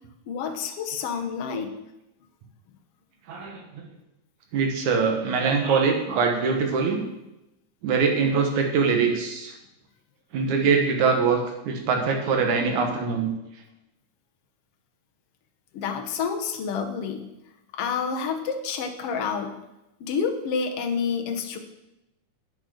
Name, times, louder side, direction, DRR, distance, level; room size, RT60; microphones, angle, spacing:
voice 1, 0.3-1.7 15.7-17.3 17.7-19.5 20.0-21.6, left 6 dB, 65° left, 4 dB, 1.5 m, -28 dB
voice 2, 3.3-3.9 4.5-7.0 7.8-9.5 10.3-11.4 11.6-13.3, right 5 dB, 65° right, 3 dB, 2.7 m, -23 dB
8.7 x 7.7 x 6.4 m, 0.93 s
omnidirectional pair, 3.8 m